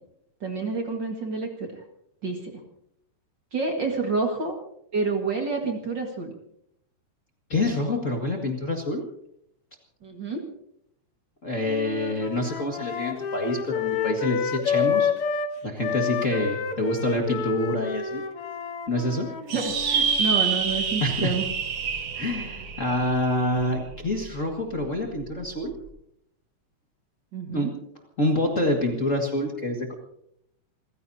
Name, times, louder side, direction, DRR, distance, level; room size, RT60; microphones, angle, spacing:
voice 1, 0.4-1.8 2.2-2.6 3.5-4.5 4.9-6.3 10.0-10.5 19.5-21.5 27.3-27.7, right 4 dB, 40° right, 3 dB, 2.2 m, -28 dB
voice 2, 7.5-9.0 11.4-15.1 15.6-18.2 18.9-19.3 21.0-21.3 22.2-25.7 27.5-27.7 28.2-29.9, left 1 dB, 30° left, 1 dB, 2.0 m, -26 dB
sound 1, 11.7-15.5 15.8-20.2, left 6 dB, 55° left, 2.2 m, -29 dB
sound 2, 19.5-24.2, right 6 dB, 60° right, 2.7 m, -27 dB
29.0 x 15.5 x 2.8 m, 0.73 s
omnidirectional pair, 3.4 m